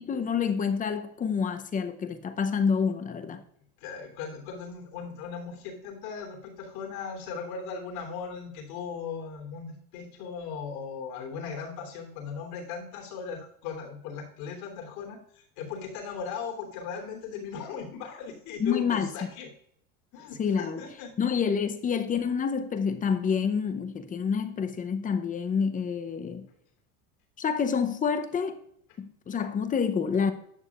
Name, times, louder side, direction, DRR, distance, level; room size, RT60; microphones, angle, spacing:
voice 1, 0.0-3.4 18.6-19.1 20.4-20.8 21.2-26.5 27.4-28.6 29.0-30.3, left 6 dB, 20° left, 0.7 m, -28 dB
voice 2, 3.8-19.5 20.1-21.1, left 6 dB, 70° left, 3.4 m, -38 dB
11.0 x 6.4 x 2.4 m
supercardioid pair, 120°, 43 cm